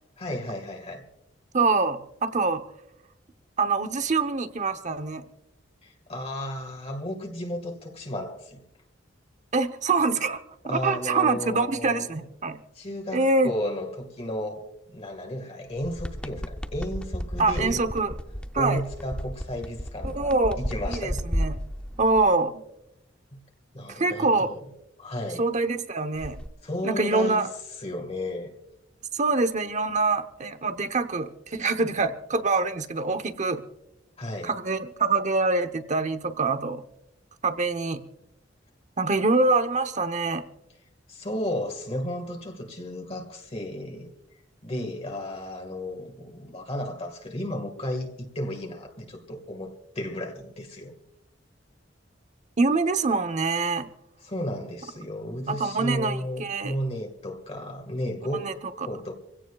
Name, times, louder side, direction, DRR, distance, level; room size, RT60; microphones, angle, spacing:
voice 1, 0.2-1.0 5.8-8.6 10.7-12.3 12.8-17.8 18.6-20.3 20.6-21.2 23.3-23.4 23.7-24.6 25.0-25.5 26.6-27.5 27.8-28.5 34.2-34.5 41.1-44.1 44.6-50.9 54.2-59.1, left 1 dB, 35° left, 1.7 m, -33 dB
voice 2, 1.5-2.6 3.6-5.2 9.5-10.4 10.6-12.6 13.1-13.5 17.4-18.1 18.5-18.8 20.0-20.6 20.9-21.6 22.0-22.6 23.9-24.5 25.4-26.4 26.8-27.5 29.1-33.6 34.4-36.8 37.4-38.0 39.0-40.4 52.6-53.9 55.5-56.7 58.4-58.5, right 3 dB, 40° right, 0.9 m, -25 dB
sound 1, 15.7-22.3 26.2-26.5, equal, 5° left, 0.6 m, -33 dB
27.0 x 16.5 x 2.4 m
head